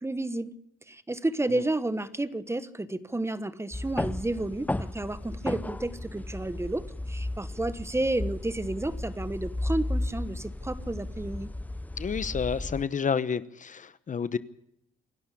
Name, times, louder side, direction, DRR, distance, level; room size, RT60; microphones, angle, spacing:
voice 1, 0.0-0.5 0.9-11.5, right 2 dB, 15° right, 15 dB, 1.2 m, -31 dB
sound 1, 3.7-12.8, left 1 dB, 10° left, 0.9 m, -34 dB
voice 2, 12.0-14.4, left 6 dB, 40° left, 15 dB, 1.0 m, -30 dB
27.0 x 12.0 x 8.5 m, 0.77 s
cardioid pair, 90°, 20 cm